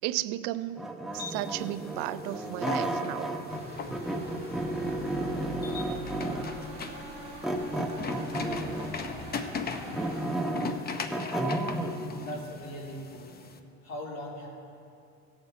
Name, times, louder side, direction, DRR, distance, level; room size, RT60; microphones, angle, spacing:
voice 1, 0.0-0.9 1.1-3.3, right 15 dB, 75° right, 14 dB, 0.5 m, -34 dB
sound 1, 0.8-3.6 3.9-6.6 7.4-9.0 9.5-12.0, right 1 dB, ahead, 0.8 m, -32 dB
sound 2, 1.1-13.6, left 5 dB, 30° left, 0.7 m, -40 dB
sound 3, 3.5-10.2, right 1 dB, 20° right, 3.2 m, -43 dB
voice 2, 11.6-13.4 13.8-14.5, equal, 50° left, -2 dB, 2.9 m, -40 dB
18.0 x 7.3 x 4.1 m, 2.5 s
supercardioid pair, 110°, 34 cm